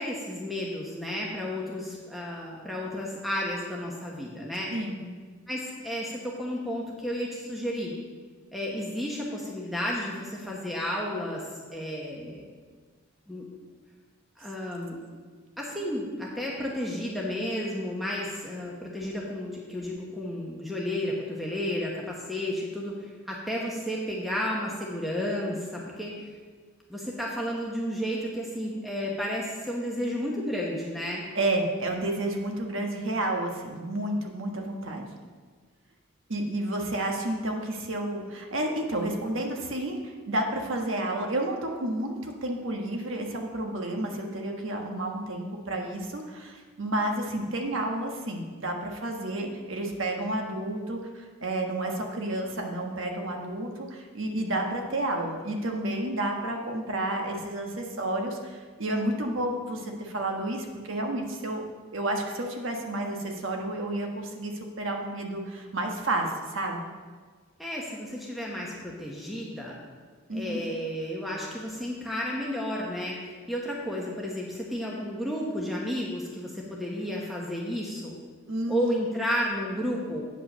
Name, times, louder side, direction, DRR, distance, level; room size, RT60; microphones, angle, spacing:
voice 1, 0.0-4.7 5.5-7.9 8.5-12.5 13.3-13.5 14.4-15.0 15.6-26.3 26.9-31.2 67.6-69.8 70.3-78.2 78.7-80.2, equal, ahead, -3 dB, 1.0 m, -32 dB
voice 2, 4.7-5.0 31.3-35.1 36.3-61.6 61.9-66.8 70.3-70.6 78.5-78.9, right 1 dB, 70° right, 2 dB, 1.3 m, -31 dB
8.8 x 5.5 x 6.6 m, 1.5 s
head